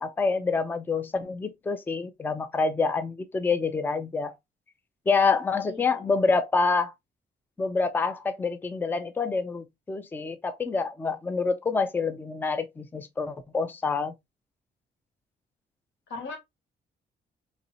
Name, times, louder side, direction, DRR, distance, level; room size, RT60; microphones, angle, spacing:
voice 1, 0.0-4.3 5.1-6.9 7.6-14.1, left 4 dB, 10° left, 0.4 m, -27 dB
voice 2, 5.7-6.1 16.1-16.4, left 3 dB, 90° left, 1.4 m, -39 dB
4.1 x 3.0 x 2.6 m
cardioid pair, 150°, 18 cm